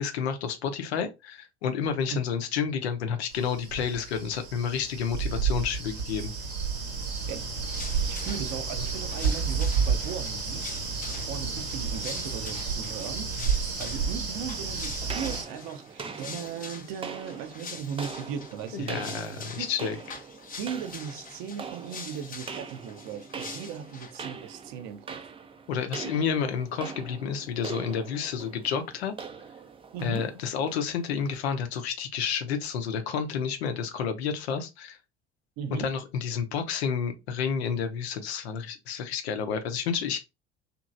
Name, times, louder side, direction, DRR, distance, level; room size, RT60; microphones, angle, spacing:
voice 1, 0.0-6.3 18.7-20.0 25.7-29.1 30.0-35.0 35.7-40.2, left 7 dB, 70° left, 0.6 m, -30 dB
sound 1, 3.3-15.4, right 5 dB, 75° right, 1.2 m, -31 dB
sound 2, 7.7-24.3, left 5 dB, 25° left, 0.7 m, -44 dB
voice 2, 7.8-10.7 11.1-13.3 13.8-19.0 19.6-19.7 20.6-25.2 29.9-30.3 35.6-35.9, right 8 dB, 55° right, 0.7 m, -37 dB
sound 3, 15.1-31.4, right 5 dB, 15° right, 0.4 m, -42 dB
2.9 x 2.5 x 2.5 m
figure-of-eight pair, 60°, 33 cm